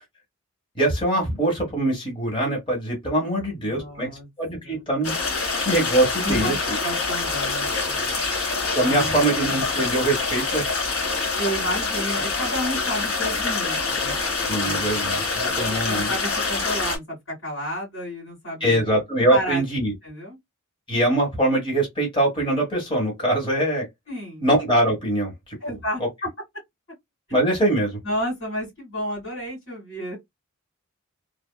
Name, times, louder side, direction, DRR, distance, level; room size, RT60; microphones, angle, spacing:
voice 1, 0.7-4.1 4.4-5.1 5.6-6.5 8.7-10.6 14.5-16.1 18.6-19.9 20.9-23.9 24.4-25.3 25.7-25.8 27.3-28.0, right 1 dB, 25° left, 1.3 m, -23 dB
voice 2, 3.3-4.3 4.6-4.8 6.2-8.2 8.8-9.3 11.4-14.9 15.4-19.0 19.3-19.6 20.0-20.4 24.1-24.5 25.6-26.0 28.0-30.2, equal, 60° left, 2.2 m, -31 dB
sound 1, 5.0-17.0, left 4 dB, 80° left, 2.0 m, -26 dB
3.4 x 2.0 x 2.2 m
head